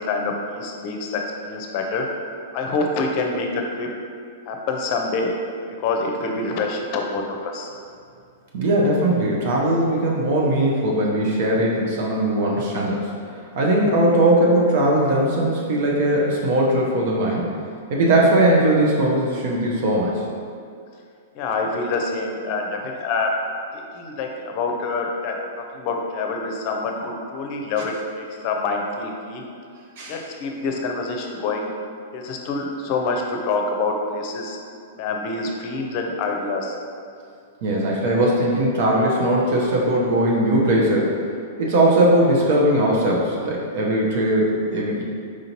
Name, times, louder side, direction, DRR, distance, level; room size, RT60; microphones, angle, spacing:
voice 1, 0.0-2.1 2.5-3.9 4.5-5.4 5.8-7.7 21.3-23.3 23.7-29.4 30.1-31.7 32.1-34.6 35.0-36.8 40.9-41.0, left 3 dB, 45° left, 2 dB, 0.6 m, -26 dB
voice 2, 8.5-13.1 13.5-17.5 17.9-20.2 30.0-30.2 37.6-41.2 41.6-45.0, right 1 dB, 55° right, -3 dB, 0.7 m, -19 dB
4.8 x 3.8 x 2.9 m, 2.3 s
figure-of-eight pair, 105°, 0 cm